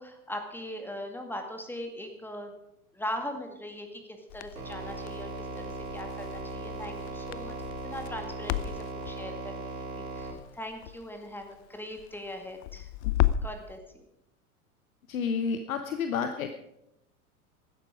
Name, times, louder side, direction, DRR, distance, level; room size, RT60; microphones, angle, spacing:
voice 1, 0.0-2.5 2.9-7.6 7.8-8.8 9.1-12.9 13.4-14.0, left 1 dB, 5° left, 4 dB, 2.1 m, -40 dB
Crackle, 4.3-13.6, left 12 dB, 45° left, 0.7 m, -35 dB
sound 1, 4.6-10.3, right 2 dB, 70° right, 4.2 m, -38 dB
voice 2, 15.1-16.5, left 6 dB, 65° left, 8 dB, 1.1 m, -30 dB
15.5 x 12.5 x 5.1 m, 0.82 s
figure-of-eight pair, 90°, 44 cm